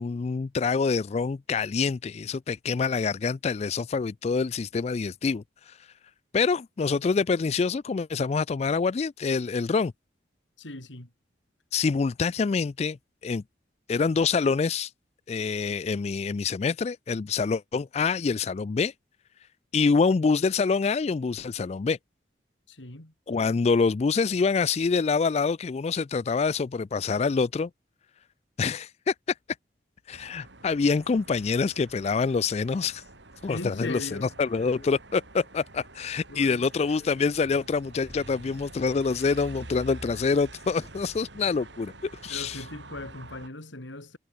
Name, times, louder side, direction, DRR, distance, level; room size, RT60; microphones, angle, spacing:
voice 1, 0.0-5.9 6.3-9.9 11.7-13.0 13.2-13.4 13.9-14.9 15.3-18.9 19.7-22.0 23.3-27.7 28.6-29.1 30.1-33.0 33.4-41.9 42.2-42.6, left 5 dB, 35° left, 0.3 m, -26 dB
voice 2, 10.6-11.1 22.7-23.1 33.5-34.3 36.3-36.7 42.2-44.2, left 2 dB, 85° left, 3.4 m, -39 dB
sound 1, 30.1-43.5, right 2 dB, 75° right, 4.2 m, -47 dB
head